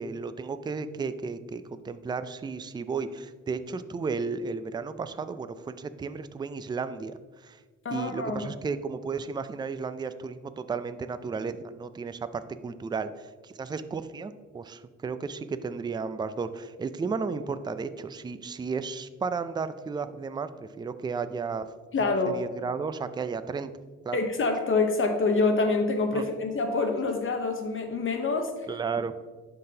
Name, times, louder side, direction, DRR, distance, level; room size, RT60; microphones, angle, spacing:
voice 1, 0.0-7.1 7.4-7.6 7.9-21.7 22.0-23.7 24.0-24.2 26.1-26.2 28.7-29.1, right 5 dB, 15° right, 11 dB, 0.3 m, -33 dB
voice 2, 7.8-8.5 21.9-22.4 24.1-28.5, left 3 dB, 40° left, 5 dB, 0.8 m, -26 dB
11.0 x 3.9 x 2.8 m, 1.4 s
cardioid pair, 90°, 30 cm